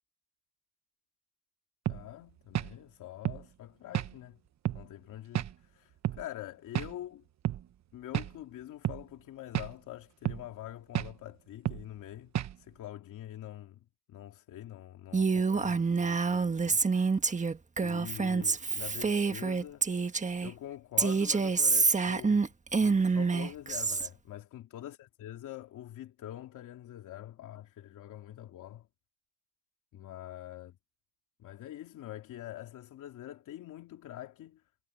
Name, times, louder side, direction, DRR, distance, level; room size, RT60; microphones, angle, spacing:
voice 1, 1.9-4.4 4.7-7.3 7.9-16.8 17.8-20.1 20.4-28.9 29.9-30.8 31.4-34.6, left 13 dB, 80° left, 3.0 m, -45 dB
sound 1, 1.9-2.0 2.5-2.7 3.3-3.4 3.9-4.1 4.7-4.8 5.4-5.5 6.0-6.2 6.8-6.9 7.4-7.6 8.1-8.3 8.8-9.0 9.5-9.7 10.3-10.5 10.9-11.1 11.7-11.8 12.4-12.6, right 12 dB, 65° right, 1.2 m, -31 dB
Female speech woman speaking, 15.1-20.5 21.0-24.1, right 4 dB, 25° right, 1.5 m, -27 dB
cardioid pair, 90°, 30 cm